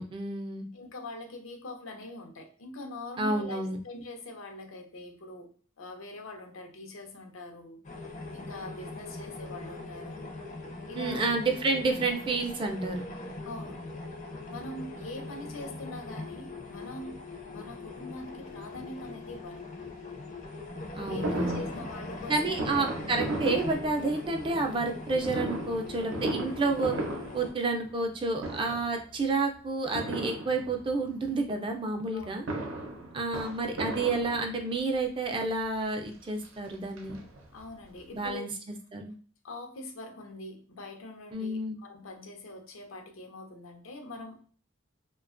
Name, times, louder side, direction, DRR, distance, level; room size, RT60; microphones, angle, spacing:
voice 1, 0.0-0.7 3.2-3.8 11.0-13.0 21.0-21.6 22.3-26.9 27.3-32.4 33.1-37.2 38.1-38.5 38.9-39.1 41.3-41.7, right 3 dB, 25° right, 3 dB, 0.3 m, -30 dB
voice 2, 0.7-7.8 8.3-10.3 10.9-11.2 13.4-13.9 14.5-19.7 21.1-22.8 32.1-32.4 37.5-38.5 39.4-44.5, left 2 dB, 85° left, 3 dB, 0.6 m, -43 dB
sound 1, 7.8-27.5, left 2 dB, 35° left, 0.4 m, -41 dB
Fireworks, 21.2-24.4 25.2-28.1 28.4-29.0 29.9-31.0 32.2-34.8 35.6-35.7 36.0-36.1 36.4-37.7 38.0-38.1 38.3-38.4, right 1 dB, 85° right, 0.6 m, -36 dB
2.7 x 2.2 x 2.4 m, 0.44 s
head